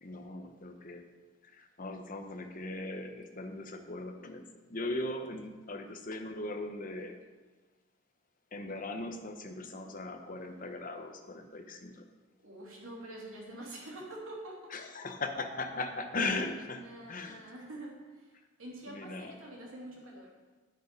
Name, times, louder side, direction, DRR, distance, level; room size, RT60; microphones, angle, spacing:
voice 1, 0.0-1.0 1.5-4.4 4.7-7.2 8.5-12.0 14.7-17.4 18.9-19.3, left 2 dB, 40° left, 5 dB, 0.9 m, -38 dB
voice 2, 12.4-14.7 16.7-18.3 18.6-20.3, right 1 dB, 70° right, -2 dB, 2.7 m, -46 dB
9.8 x 8.3 x 5.2 m, 1.3 s
head